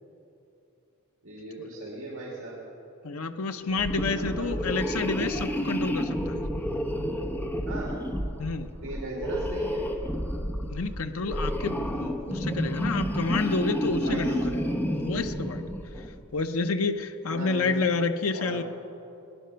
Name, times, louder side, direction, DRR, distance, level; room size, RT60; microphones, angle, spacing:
voice 1, 1.2-2.6 4.1-4.5 7.7-8.0 8.8-9.9 14.0-14.5 17.2-17.8 18.3-18.6, right 2 dB, 65° right, -4 dB, 2.5 m, -37 dB
voice 2, 3.0-6.4 8.4-8.7 10.7-14.6 14.9-15.6 16.3-18.6, left 3 dB, 75° left, 8 dB, 0.8 m, -29 dB
sound 1, 3.7-16.2, equal, 10° left, 0.8 m, -30 dB
18.5 x 10.5 x 5.7 m, 2.8 s
head